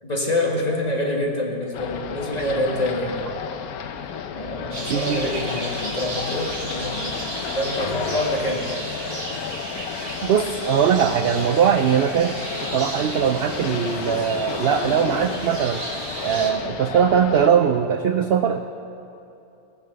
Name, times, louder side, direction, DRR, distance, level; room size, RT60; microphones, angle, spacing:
voice 1, 0.0-3.2 4.3-7.3 7.5-8.9, left 1 dB, 30° left, -1 dB, 1.6 m, -26 dB
sound 1, 1.7-17.5, left 7 dB, 80° left, 1.2 m, -32 dB
sound 2, 4.7-16.5, right 1 dB, 40° right, 1.9 m, -34 dB
voice 2, 4.9-5.3 10.2-12.3 12.6-15.8 16.2-18.6, right 8 dB, 75° right, 7 dB, 0.5 m, -20 dB
19.0 x 6.8 x 6.6 m, 2.8 s
omnidirectional pair, 1.6 m